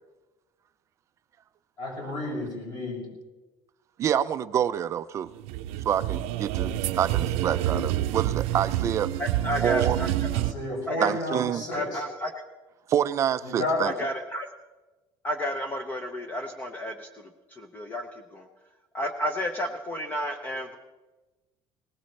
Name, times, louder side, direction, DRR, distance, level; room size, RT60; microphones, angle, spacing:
voice 1, 1.8-3.1 10.3-12.0 13.4-13.9, left 2 dB, 45° left, -2 dB, 6.4 m, -31 dB
voice 2, 4.0-5.3 5.9-9.1 9.6-10.0 11.0-11.6 12.9-13.9, right 9 dB, 30° right, 12 dB, 0.4 m, -27 dB
sound 1, 5.4-10.5, right 13 dB, 80° right, 0.6 m, -28 dB
voice 3, 9.2-10.1 10.9-11.1 11.7-12.3 13.8-14.5 15.2-17.1 17.5-18.5 18.9-20.8, equal, 15° left, 6 dB, 0.7 m, -31 dB
21.0 x 19.0 x 3.2 m, 1.2 s
cardioid pair, 180°, 10 cm